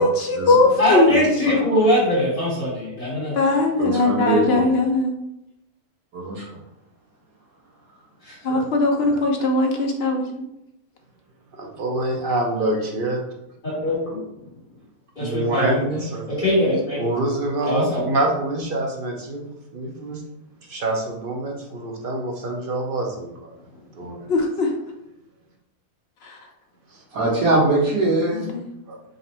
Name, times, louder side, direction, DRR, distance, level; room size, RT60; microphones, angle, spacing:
voice 1, 0.0-1.1 3.3-5.1 8.4-10.2 24.3-24.7 26.2-26.4 28.3-28.7, left 2 dB, 60° left, 2 dB, 0.7 m, -20 dB
voice 2, 0.8-3.4 8.2-8.4 13.6-14.2 15.2-15.8 16.3-17.0 17.6-18.1, left 1 dB, 35° left, -11 dB, 1.8 m, -21 dB
voice 3, 3.8-4.6 6.1-6.6 8.5-8.7 9.0-9.2 27.1-28.5, right 2 dB, 90° right, -6 dB, 1.5 m, -22 dB
voice 4, 11.6-13.2 15.2-16.5 17.0-19.5 19.7-20.2 20.7-23.5 23.9-24.2 26.9-27.0 28.9-29.0, right 2 dB, 50° right, 0 dB, 0.7 m, -26 dB
3.9 x 2.6 x 4.2 m, 0.85 s
omnidirectional pair, 1.5 m